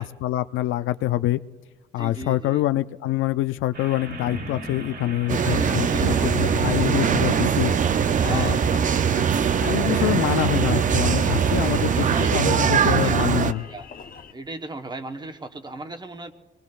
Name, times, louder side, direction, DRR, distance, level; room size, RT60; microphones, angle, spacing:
voice 1, 0.0-1.4 1.9-7.7 8.2-8.6 9.6-13.7, left 15 dB, 80° left, 14 dB, 0.4 m, -25 dB
voice 2, 2.0-2.6 5.5-6.6 8.2-8.6 11.9-13.9 14.3-16.3, right 2 dB, 20° right, 7 dB, 1.1 m, -37 dB
sound 1, 3.7-12.1, right 2 dB, 60° right, 3.5 m, -38 dB
sound 2, 5.3-13.5, right 7 dB, 40° right, 0.5 m, -21 dB
Engine, 5.4-14.3, left 6 dB, 45° left, 0.9 m, -38 dB
26.0 x 20.0 x 2.4 m, 1.2 s
cardioid pair, 90°, 20 cm